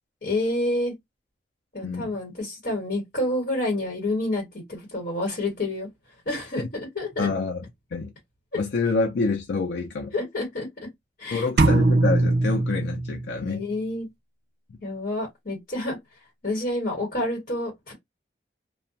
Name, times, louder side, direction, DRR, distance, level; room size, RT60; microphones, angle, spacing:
voice 1, 0.2-0.9 1.7-5.9 6.3-7.3 10.1-10.7 11.2-11.5 13.4-14.1 14.8-16.0 16.4-17.9, left 1 dB, 60° left, 1.1 m, -28 dB
voice 2, 7.2-7.6 7.9-8.1 8.5-10.1 11.3-13.7, left 4 dB, 80° left, 0.4 m, -27 dB
sound 1, 11.6-13.6, right 2 dB, 60° right, 0.4 m, -21 dB
2.2 x 2.1 x 2.6 m
head